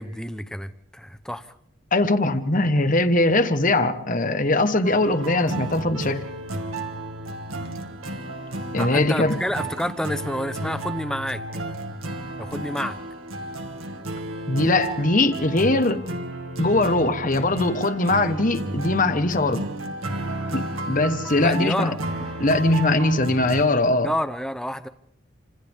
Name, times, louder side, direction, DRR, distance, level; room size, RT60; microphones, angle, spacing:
voice 1, 0.0-1.6 7.8-7.9 8.8-11.4 12.4-13.0 21.3-22.0 24.0-24.9, equal, 5° left, 9 dB, 0.8 m, -29 dB
voice 2, 1.9-6.2 8.7-9.3 14.5-16.0 16.6-19.6 20.5-21.9 22.4-24.1, left 2 dB, 40° left, 9 dB, 1.4 m, -21 dB
sound 1, 4.8-23.7, right 1 dB, 85° right, 2.1 m, -32 dB
28.5 x 26.5 x 3.6 m, 0.77 s
head